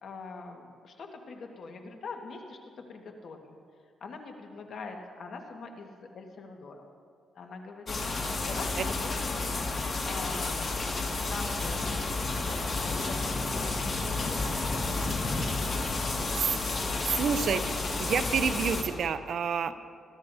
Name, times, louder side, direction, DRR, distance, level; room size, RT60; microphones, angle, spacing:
voice 1, 0.0-3.6 4.0-6.8 7.3-8.0 8.4-9.4 10.0-10.8 11.2-11.9 12.1-14.5 14.9-15.6 15.9-16.6 17.0-17.6 19.7-19.8, left 4 dB, 60° left, 3 dB, 1.6 m, -43 dB
sound 1, 7.9-18.8, left 3 dB, 40° left, 2.0 m, -31 dB
voice 2, 16.3-17.6 18.0-19.8, right 7 dB, 65° right, 11 dB, 0.6 m, -29 dB
21.5 x 12.5 x 2.8 m, 2.2 s
cardioid pair, 100°, 0 cm